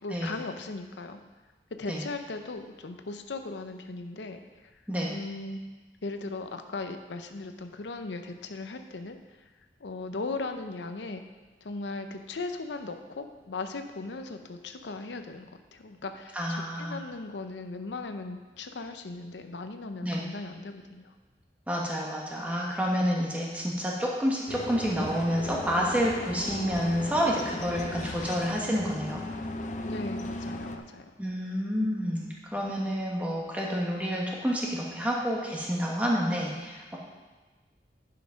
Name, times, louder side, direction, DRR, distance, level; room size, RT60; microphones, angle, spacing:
voice 1, 0.0-1.2 1.8-4.7 5.1-5.6 6.0-9.5 9.8-11.2 11.6-21.1 29.8-31.1, left 3 dB, 90° left, 7 dB, 0.7 m, -38 dB
voice 2, 16.3-17.0 20.0-20.2 21.7-29.2 31.2-37.0, equal, 10° right, -3 dB, 1.4 m, -29 dB
sound 1, 24.5-30.8, left 2 dB, 45° left, 0.5 m, -37 dB
10.0 x 5.9 x 5.1 m, 1.3 s
head